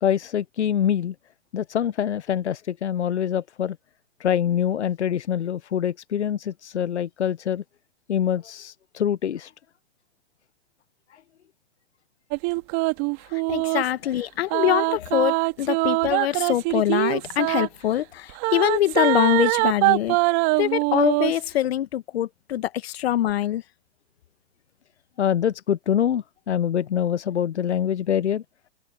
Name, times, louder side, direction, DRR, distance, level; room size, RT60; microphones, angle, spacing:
voice 1, 0.0-1.1 1.5-3.8 4.2-7.6 8.1-9.5 11.1-11.2 25.2-28.4, left 9 dB, 90° left, 0.7 m, -25 dB
sound 1, 12.3-13.9 14.5-17.7 18.4-21.4, right 27 dB, 40° right, 2.0 m, -23 dB
voice 2, 13.3-20.2 20.6-23.6, left 12 dB, 65° left, 1.6 m, -24 dB
hypercardioid pair, 120°, 34 cm